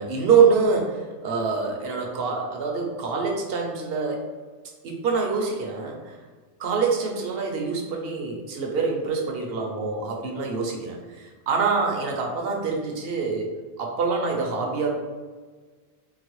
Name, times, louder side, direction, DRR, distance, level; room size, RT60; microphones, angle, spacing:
voice 1, 0.0-4.2 4.8-6.2 6.6-14.9, right 5 dB, 65° right, 1 dB, 0.8 m, -25 dB
3.8 x 2.1 x 3.0 m, 1.4 s
omnidirectional pair, 1.1 m